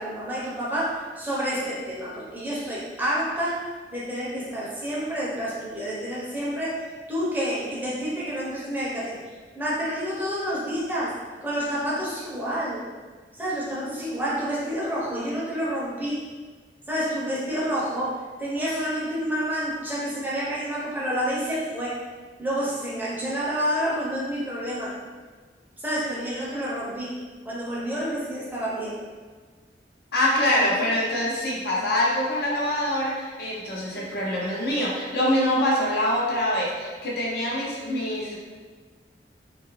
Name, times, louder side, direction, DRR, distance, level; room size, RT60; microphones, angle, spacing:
voice 1, 0.0-9.2 9.6-12.8 13.4-16.2 16.9-22.0 22.4-24.9 25.8-27.2 27.4-29.0 30.4-30.8, equal, 10° right, -7 dB, 0.6 m, -29 dB
voice 2, 30.1-38.4, left 1 dB, 65° left, -4 dB, 0.7 m, -25 dB
2.8 x 2.4 x 3.1 m, 1.5 s
head